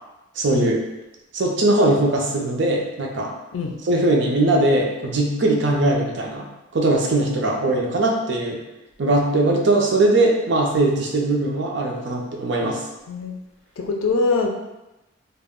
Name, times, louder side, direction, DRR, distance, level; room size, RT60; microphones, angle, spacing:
voice 1, 0.4-0.8 1.3-3.3 3.8-6.5 6.7-8.6 9.0-12.8, right 2 dB, 60° right, 0 dB, 0.5 m, -20 dB
voice 2, 13.1-13.4 13.8-14.5, left 3 dB, 85° left, 2 dB, 0.4 m, -23 dB
2.3 x 2.1 x 3.5 m, 0.99 s
head